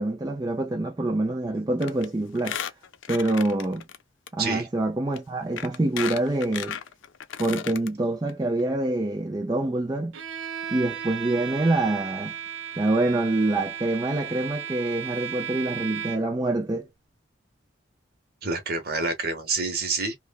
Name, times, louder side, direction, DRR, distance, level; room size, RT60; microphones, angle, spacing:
voice 1, 0.0-2.6 3.1-3.8 4.3-6.8 7.4-10.2 10.7-12.3 12.8-16.9, right 2 dB, 20° right, 0.4 m, -26 dB
Squeak, 1.8-2.1 2.4-4.0 4.3-4.4 5.1-5.2 5.6-7.9 8.3-8.4 8.6-8.7, left 8 dB, 85° left, 0.5 m, -34 dB
Bowed string instrument, 10.1-16.4, right 9 dB, 75° right, 0.5 m, -35 dB
voice 2, 18.4-20.1, right 3 dB, 50° right, 1.0 m, -27 dB
3.1 x 2.2 x 2.2 m
head